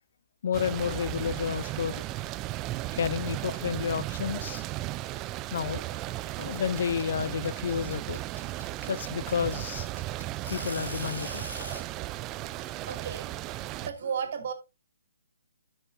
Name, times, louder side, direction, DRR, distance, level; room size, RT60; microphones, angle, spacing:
voice 1, 0.4-2.0 2.9-4.6 5.5-5.8 6.4-8.2 8.9-9.9 10.5-11.4, left 7 dB, 50° left, 0.4 m, -30 dB
sound 1, 0.5-13.9, right 16 dB, 20° right, 0.3 m, -35 dB
sound 2, 6.5-11.8, left 1 dB, 85° left, 2.1 m, -41 dB
voice 2, 12.4-13.3 13.8-14.5, right 7 dB, 45° right, 2.3 m, -35 dB
11.5 x 6.2 x 2.6 m
figure-of-eight pair, 135°, 0 cm